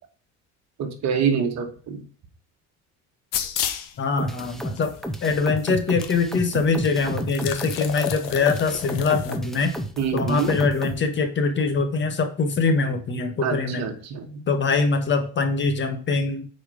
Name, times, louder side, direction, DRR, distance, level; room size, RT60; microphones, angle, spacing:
voice 1, 0.8-2.0 10.0-10.5 13.4-14.3, right 6 dB, 55° right, 5 dB, 1.7 m, -26 dB
sound 1, 3.3-3.9 4.8-4.9 6.0-6.1 6.4-6.5 7.2-9.4, left 10 dB, 80° left, 1.2 m, -30 dB
voice 2, 4.0-4.9 5.2-9.7 10.1-13.9 14.5-16.5, left 4 dB, 35° left, 7 dB, 1.3 m, -23 dB
sound 2, 4.2-11.0, equal, ahead, 0.9 m, -32 dB
8.5 x 4.5 x 5.1 m, 0.41 s
cardioid pair, 135°, 33 cm